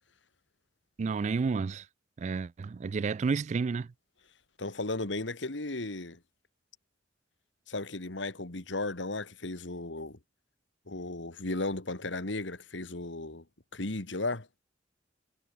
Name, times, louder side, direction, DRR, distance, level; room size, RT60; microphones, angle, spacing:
voice 1, 1.0-1.9 2.2-3.9, right 4 dB, 40° right, 0.3 m, -30 dB
voice 2, 4.6-6.2 7.7-10.2 10.9-13.4 13.7-14.5, left 2 dB, 70° left, 2.1 m, -35 dB
head